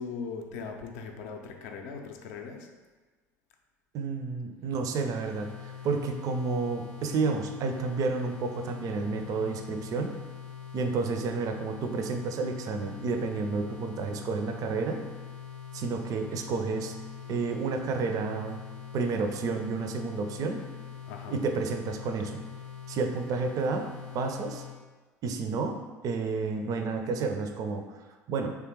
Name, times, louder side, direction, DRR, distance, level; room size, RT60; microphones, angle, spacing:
voice 1, 0.0-2.7 21.1-21.5, left 5 dB, 60° left, 3 dB, 0.5 m, -39 dB
voice 2, 3.9-10.2 10.7-15.0 15.7-17.0 17.3-18.6 18.9-20.6 21.3-22.4 22.9-23.9 24.1-24.6 25.2-25.8 26.0-27.8 28.3-28.5, right 4 dB, 40° right, 5 dB, 0.4 m, -30 dB
sound 1, 5.1-24.8, left 9 dB, 85° right, 0.8 m, -43 dB
3.6 x 3.3 x 3.0 m, 1.3 s
figure-of-eight pair, 65°, 9 cm